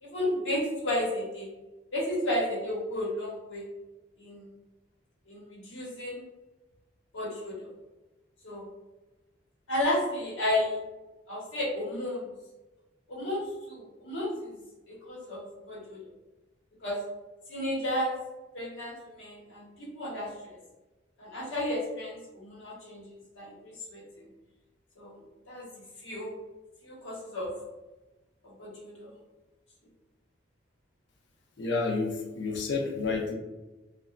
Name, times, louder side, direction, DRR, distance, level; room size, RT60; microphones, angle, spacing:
voice 1, 0.0-1.5 1.9-3.6 4.2-4.5 5.3-6.2 7.1-7.7 8.4-8.7 9.7-10.8 11.3-12.3 13.1-14.5 15.0-16.0 16.8-17.0 17.5-18.1 18.5-20.6 21.2-24.0 25.0-25.2 25.5-25.6 26.0-26.4 26.8-27.5 28.4-29.1, left 1 dB, 90° left, -5 dB, 0.9 m, -33 dB
voice 2, 31.6-33.3, left 4 dB, 65° left, 1 dB, 0.4 m, -30 dB
2.8 x 2.2 x 2.4 m, 1.1 s
head